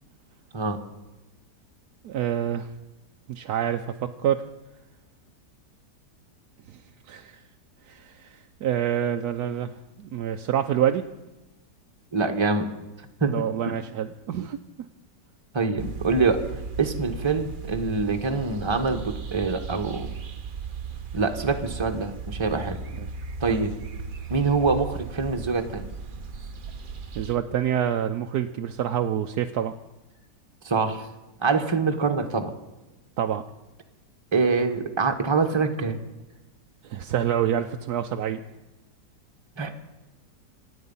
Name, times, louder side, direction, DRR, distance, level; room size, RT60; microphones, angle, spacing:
voice 1, 2.0-2.7 3.3-4.5 6.7-6.8 7.1-7.4 7.9-11.0 13.2-14.6 23.0-23.1 23.5-23.7 27.1-29.7 33.2-33.4 36.8-38.4, right 10 dB, 70° right, 4 dB, 1.2 m, -27 dB
voice 2, 12.1-12.7 13.2-13.3 13.6-13.7 15.5-16.4 16.8-20.1 21.1-22.8 23.4-23.7 24.3-25.9 30.6-31.1 31.4-32.5 34.3-36.0 39.6-39.7, right 4 dB, 15° right, 5 dB, 1.3 m, -25 dB
sound 1, 15.8-27.4, right 5 dB, 40° right, 0.9 m, -36 dB
26.0 x 9.0 x 5.5 m, 1.0 s
omnidirectional pair, 1.8 m